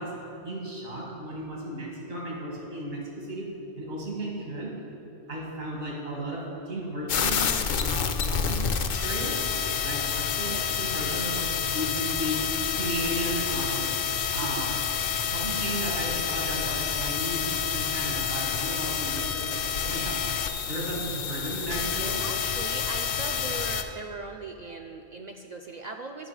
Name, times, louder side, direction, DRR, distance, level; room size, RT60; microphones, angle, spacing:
voice 1, 0.0-3.5 3.8-4.7 5.3-7.5 7.8-9.4 9.8-13.9 14.3-14.8 15.3-20.3 20.7-22.2, right 1 dB, 80° right, -2 dB, 2.0 m, -34 dB
sound 1, 7.1-23.8, left 7 dB, 60° left, 0.7 m, -28 dB
voice 2, 10.4-10.7 14.4-14.5 22.2-26.3, right 3 dB, 60° right, 3 dB, 0.4 m, -39 dB
11.5 x 5.6 x 4.7 m, 2.8 s
omnidirectional pair, 1.2 m